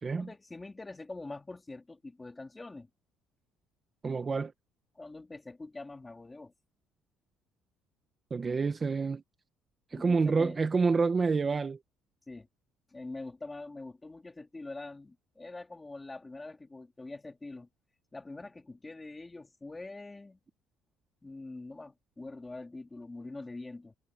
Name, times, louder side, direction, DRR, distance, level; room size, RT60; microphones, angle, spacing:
voice 1, 0.2-2.9 4.9-6.5 9.9-10.6 12.3-12.5 12.9-17.7 18.1-20.4 21.2-24.0, left 2 dB, 10° left, 2.2 m, -44 dB
voice 2, 4.0-4.5 8.3-9.2 9.9-11.8, right 4 dB, 20° right, 0.8 m, -28 dB
cardioid pair, 165°, 0 cm